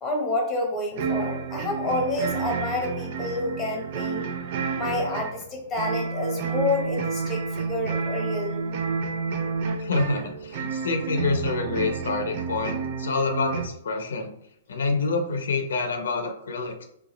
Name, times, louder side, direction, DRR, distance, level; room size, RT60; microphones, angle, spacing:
voice 1, 0.0-4.3 4.8-5.4 5.7-8.7, left 2 dB, 15° left, 0 dB, 0.9 m, -28 dB
sound 1, 0.9-13.7, right 5 dB, 50° right, 0.4 m, -30 dB
voice 2, 9.8-14.3 14.7-16.8, left 3 dB, 85° left, 5 dB, 0.6 m, -27 dB
2.9 x 2.4 x 3.8 m, 0.76 s
hypercardioid pair, 150°, 0 cm